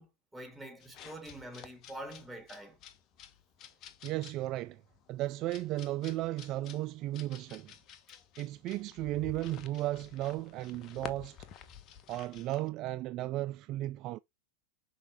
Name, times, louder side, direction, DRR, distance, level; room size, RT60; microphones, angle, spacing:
voice 1, 0.0-2.8, right 1 dB, 5° right, 3.9 m, -46 dB
sound 1, 0.8-12.7, left 8 dB, 35° left, 1.2 m, -51 dB
voice 2, 4.0-4.8 5.1-7.7 8.4-11.4 12.1-14.2, right 15 dB, 40° right, 0.3 m, -35 dB
6.7 x 5.2 x 3.7 m
figure-of-eight pair, 90°, 0 cm